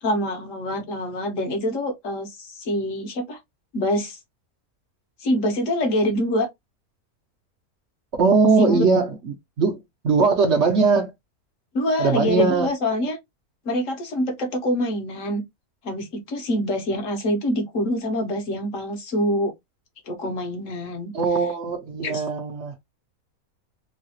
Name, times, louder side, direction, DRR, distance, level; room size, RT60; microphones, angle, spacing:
voice 1, 0.0-3.4 3.7-4.2 5.2-6.5 8.6-8.9 11.7-13.2 13.6-15.4 15.8-19.5 20.1-21.1 22.0-22.2, equal, 60° left, 1.2 m, -25 dB
voice 2, 8.2-9.8 10.0-11.1 12.0-12.7 21.1-22.7, right 4 dB, 60° right, 0.8 m, -20 dB
3.2 x 2.3 x 2.6 m
omnidirectional pair, 1.6 m